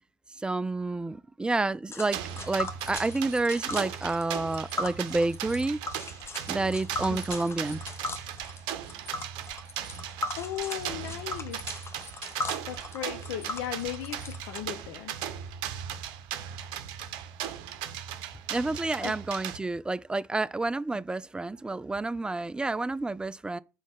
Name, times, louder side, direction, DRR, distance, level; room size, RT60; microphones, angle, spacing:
voice 1, 0.4-5.8 6.5-7.8 18.5-23.6, right 2 dB, 10° right, 0.3 m, -29 dB
Tick, 1.9-14.6, left 2 dB, 30° left, 0.8 m, -38 dB
sound 1, 2.1-19.6, right 10 dB, 60° right, 0.6 m, -38 dB
voice 2, 9.9-11.8 12.7-15.2 19.0-19.2, left 12 dB, 65° left, 0.5 m, -37 dB
4.9 x 4.1 x 5.8 m
figure-of-eight pair, 50°, 9 cm